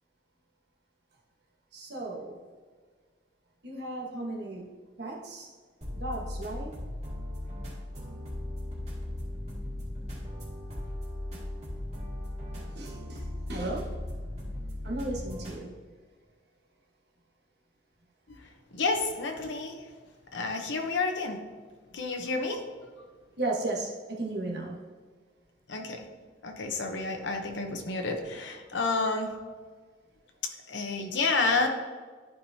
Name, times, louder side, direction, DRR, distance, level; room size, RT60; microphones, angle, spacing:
voice 1, 1.7-2.4 3.6-4.7 5.0-5.5 5.9-6.7 12.7-13.2 13.5-13.9 14.8-15.7 23.4-24.8, right 2 dB, 60° right, -2 dB, 1.3 m, -35 dB
sound 1, 5.8-15.6, left 1 dB, 35° right, 2.3 m, -37 dB
voice 2, 18.7-19.8 20.3-21.4 21.9-22.6 25.7-26.1 26.4-29.3 30.7-31.7, left 3 dB, 80° left, 4 dB, 0.9 m, -29 dB
12.0 x 4.7 x 2.8 m, 1.5 s
head